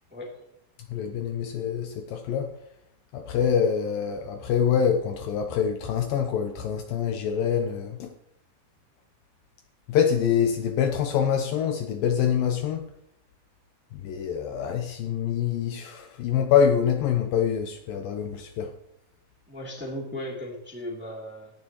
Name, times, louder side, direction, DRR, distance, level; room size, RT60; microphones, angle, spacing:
voice 1, 0.9-2.5 3.1-8.1 9.9-12.9 13.9-18.7, left 8 dB, 75° left, 6 dB, 2.3 m, -25 dB
voice 2, 19.5-21.5, left 1 dB, 5° right, -2 dB, 2.1 m, -36 dB
18.0 x 10.5 x 3.0 m, 0.78 s
omnidirectional pair, 4.5 m